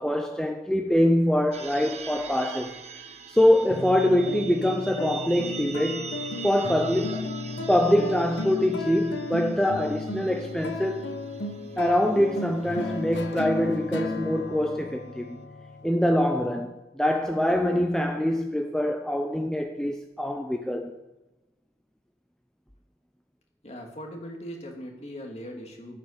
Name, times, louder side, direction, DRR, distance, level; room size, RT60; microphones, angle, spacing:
voice 1, 0.0-2.8 3.3-6.1 6.4-7.3 7.7-11.1 11.8-15.4 15.8-20.9, left 1 dB, 5° left, 0.6 m, -24 dB
sound 1, 1.5-14.1, right 5 dB, 35° right, 1.1 m, -43 dB
sound 2, 3.7-16.4, left 3 dB, 90° left, 1.1 m, -35 dB
voice 2, 23.6-26.0, equal, 35° left, 2.5 m, -39 dB
13.0 x 8.7 x 6.7 m
head